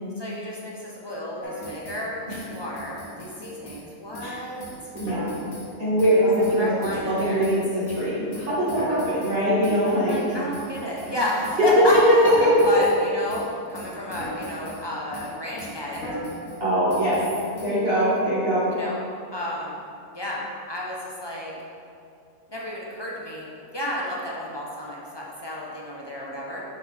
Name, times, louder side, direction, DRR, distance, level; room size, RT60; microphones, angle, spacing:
voice 1, 0.2-4.7 6.0-6.2 6.5-7.5 9.9-12.0 12.7-16.1 18.7-19.0 19.3-19.8 20.1-20.4 20.7-21.5 22.5-26.6, left 1 dB, 25° left, -5 dB, 0.5 m, -31 dB
sound 1, 1.4-2.0 2.3-3.8 4.1-4.3 4.6-5.7 6.0-7.6 7.9-11.1 11.4-11.6 11.9-13.0 13.3-13.5 13.7-14.8 15.1-15.3 15.6-16.6 16.9-17.7, equal, 75° left, 1.5 m, -37 dB
voice 2, 4.9-5.3 5.8-6.7 7.0-10.2 12.4-12.7 16.6-17.2 17.6-18.7, equal, 40° right, -11 dB, 1.6 m, -22 dB
6.7 x 4.5 x 3.4 m, 2.5 s
omnidirectional pair, 1.5 m